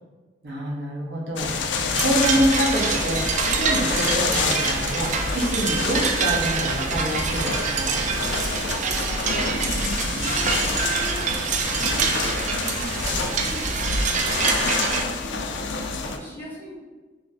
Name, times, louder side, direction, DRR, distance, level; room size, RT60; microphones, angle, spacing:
voice 1, 0.4-8.1, equal, 65° right, -3 dB, 0.7 m, -26 dB
sound 1, 1.4-16.2, left 4 dB, 70° left, 0.4 m, -28 dB
sound 2, 1.9-15.0, right 5 dB, 40° right, 0.3 m, -26 dB
voice 2, 8.6-14.6 15.0-16.7, right 1 dB, 10° left, -6 dB, 0.8 m, -38 dB
2.4 x 2.4 x 4.0 m, 1.3 s
head